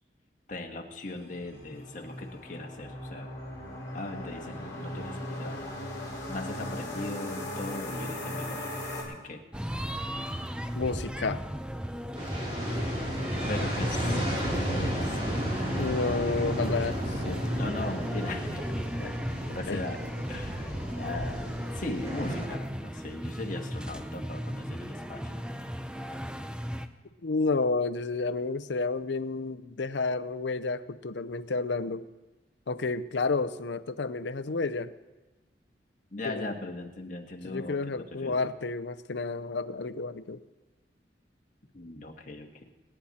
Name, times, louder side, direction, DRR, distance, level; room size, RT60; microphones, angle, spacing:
voice 1, 0.5-3.3 3.9-5.7 6.3-8.7 9.1-9.5 13.2-15.2 17.5-18.8 19.3-20.0 20.3-25.4 36.1-38.4 41.7-42.6, left 2 dB, 45° left, 2 dB, 1.6 m, -39 dB
sound 1, 1.2-9.0, left 1 dB, 20° left, 4.6 m, -38 dB
sound 2, 9.5-26.9, equal, 5° right, 0.5 m, -36 dB
voice 2, 10.7-11.4 15.7-17.4 19.0-19.1 19.7-19.8 27.2-32.1 32.7-34.9 36.2-36.5 37.4-40.4, left 3 dB, 75° left, 13 dB, 0.6 m, -31 dB
sound 3, 12.1-22.5, equal, 30° right, 3.0 m, -33 dB
26.0 x 10.0 x 4.3 m, 1.1 s
head